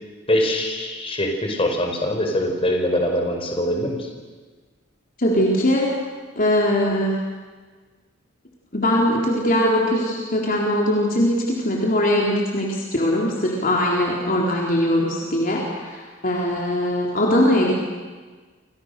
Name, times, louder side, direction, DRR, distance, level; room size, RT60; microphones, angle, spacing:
voice 1, 0.3-4.1, left 1 dB, 30° left, 2 dB, 5.0 m, -23 dB
voice 2, 5.2-6.0 6.4-7.2 8.7-11.4 11.6-17.8, left 1 dB, 45° left, -2 dB, 4.0 m, -21 dB
29.0 x 27.0 x 6.9 m, 1.4 s
head